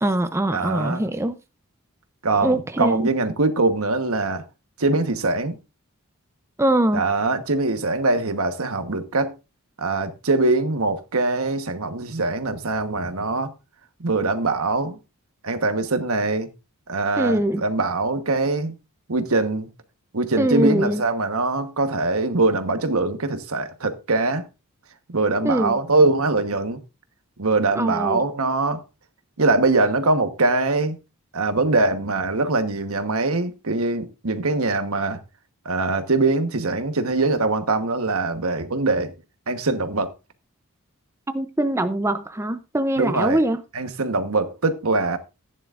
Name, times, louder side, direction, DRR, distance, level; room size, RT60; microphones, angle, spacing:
voice 1, 0.0-1.3 2.4-3.1 6.6-7.0 17.2-17.6 20.4-21.0 25.4-25.8 27.8-28.2 41.3-43.6, right 1 dB, 15° right, 0.6 m, -22 dB
voice 2, 0.5-1.0 2.2-4.4 4.8-5.6 6.9-9.3 9.8-13.5 14.0-15.0 15.4-16.5 16.9-18.7 19.1-19.7 20.1-24.5 25.1-26.8 27.4-28.8 29.4-31.0 31.3-35.2 35.6-39.1 39.5-40.1 43.0-43.4 43.7-45.2, right 3 dB, 70° right, 1.2 m, -22 dB
15.0 x 10.0 x 2.5 m
head